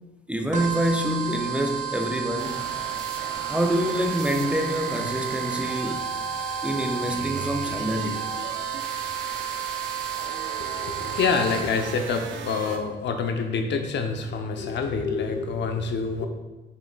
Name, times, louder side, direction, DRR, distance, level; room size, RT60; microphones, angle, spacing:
voice 1, 0.3-2.7 3.5-6.1 6.6-8.3, equal, 5° right, 0.5 m, -26 dB
sound 1, 0.5-11.9, right 9 dB, 40° right, 1.0 m, -32 dB
sound 2, 2.4-12.8, right 4 dB, 80° right, 0.6 m, -37 dB
voice 2, 10.6-16.3, left 5 dB, 65° left, 0.8 m, -27 dB
7.0 x 5.8 x 2.4 m
cardioid pair, 90°, 20 cm